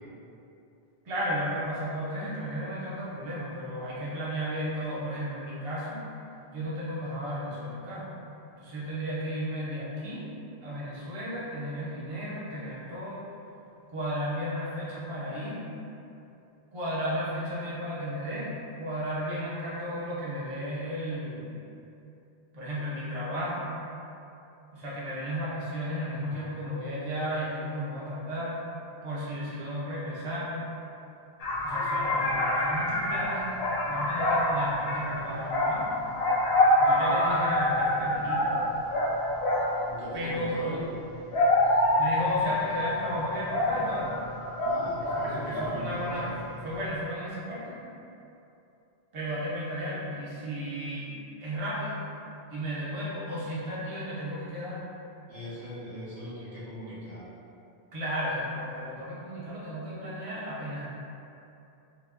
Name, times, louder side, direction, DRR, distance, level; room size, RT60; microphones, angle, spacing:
voice 1, 1.0-6.0 6.5-8.1 8.6-10.3 10.6-13.3 13.9-15.6 16.7-21.6 22.5-23.8 24.7-28.6 29.0-30.7 31.6-33.5 33.8-35.9 36.8-38.5 40.1-40.8 42.0-44.2 45.1-47.8 49.1-51.1 51.4-52.0 52.5-54.9 57.9-60.9, equal, 35° right, -7 dB, 0.7 m, -34 dB
sound 1, 31.4-39.8 40.9-45.7 46.0-46.4, left 1 dB, 80° left, 0.9 m, -26 dB
voice 2, 39.9-40.8 44.6-46.3 55.3-57.3, equal, 85° right, -11 dB, 1.4 m, -40 dB
4.7 x 2.2 x 2.4 m, 2.7 s
omnidirectional pair, 1.0 m